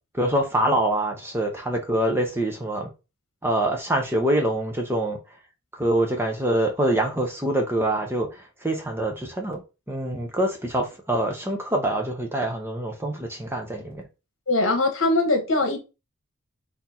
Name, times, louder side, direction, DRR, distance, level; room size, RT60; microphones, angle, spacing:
voice 1, 0.1-2.9 3.4-5.2 5.7-9.6 9.9-14.0, right 1 dB, 10° right, 0.7 m, -25 dB
voice 2, 14.5-15.8, left 2 dB, 60° left, 1.3 m, -21 dB
4.2 x 2.8 x 4.2 m
head